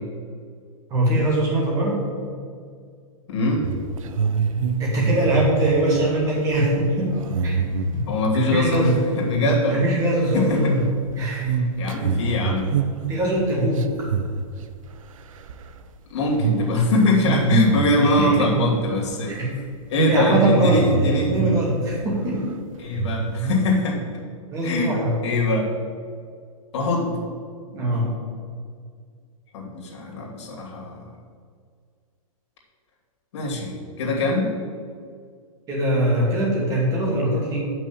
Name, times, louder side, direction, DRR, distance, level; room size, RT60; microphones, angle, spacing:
voice 1, 0.9-2.0 4.8-7.2 7.4-7.6 7.9-9.0 9.7-10.8 11.2-11.5 11.8-12.1 13.1-13.9 18.0-18.3 19.3-19.6 20.1-22.4 24.5-25.1 27.7-28.2 35.7-37.6, right 1 dB, 20° right, -4 dB, 2.5 m, -22 dB
voice 2, 3.3-3.6 8.1-8.9 9.2-9.8 10.3-10.7 11.8-12.7 16.1-19.3 19.9-21.3 22.8-24.0 24.6-24.9 25.2-25.7 26.7-27.2 29.5-31.0 33.3-34.5, left 2 dB, 50° left, -2 dB, 2.6 m, -22 dB
sound 1, 3.6-9.1 9.3-9.8 10.1-15.0 15.3-15.8 16.3-16.7 17.1-19.1 19.4-19.6 19.9-22.0 22.3-22.4 22.9-23.6, right 5 dB, 60° right, 0.7 m, -26 dB
7.8 x 6.0 x 7.0 m, 2.1 s
hypercardioid pair, 165°, 19 cm